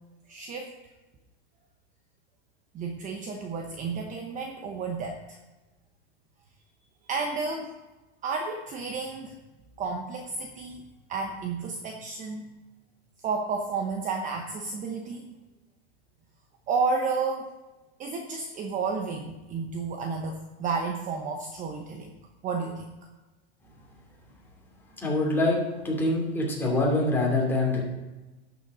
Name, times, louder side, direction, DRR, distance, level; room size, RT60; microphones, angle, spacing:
voice 1, 0.3-0.7 2.7-5.4 7.1-7.7 8.2-9.4 9.8-10.8 11.1-12.5 13.2-15.3 16.7-17.5 18.0-22.2 22.4-22.9, right 4 dB, 25° right, 3 dB, 0.9 m, -31 dB
voice 2, 25.0-27.8, left 2 dB, 5° left, -3 dB, 2.9 m, -25 dB
11.5 x 7.1 x 5.0 m, 1.1 s
supercardioid pair, 145°, 32 cm